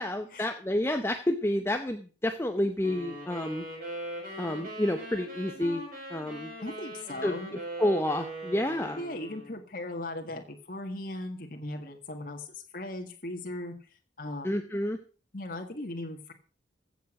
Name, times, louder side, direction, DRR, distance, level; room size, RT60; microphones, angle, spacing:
voice 1, 0.0-3.7 4.4-5.8 6.1-6.5 7.2-7.4 7.8-9.0 14.4-15.0, left 1 dB, 15° left, 7 dB, 0.7 m, -29 dB
sound 1, 2.8-9.6, right 1 dB, 45° right, 7.3 m, -41 dB
voice 2, 6.6-7.6 9.0-13.7 14.2-14.6 15.3-16.3, left 1 dB, 45° left, 3 dB, 1.7 m, -38 dB
15.5 x 7.2 x 6.0 m, 0.38 s
head